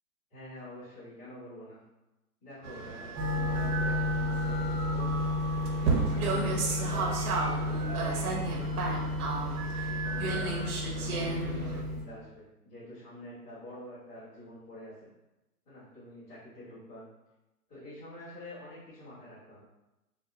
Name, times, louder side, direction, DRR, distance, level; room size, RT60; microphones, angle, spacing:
voice 1, 0.3-1.8 2.4-5.3 5.8-9.4 9.8-15.1 15.6-17.0 17.7-19.6, left 1 dB, 15° left, -13 dB, 1.4 m, -47 dB
sound 1, 2.6-11.8, right 4 dB, 70° right, 0.9 m, -33 dB
sound 2, 3.2-12.0, left 2 dB, 20° right, 0.8 m, -32 dB
4.1 x 2.1 x 2.4 m, 0.98 s
hypercardioid pair, 150°, 47 cm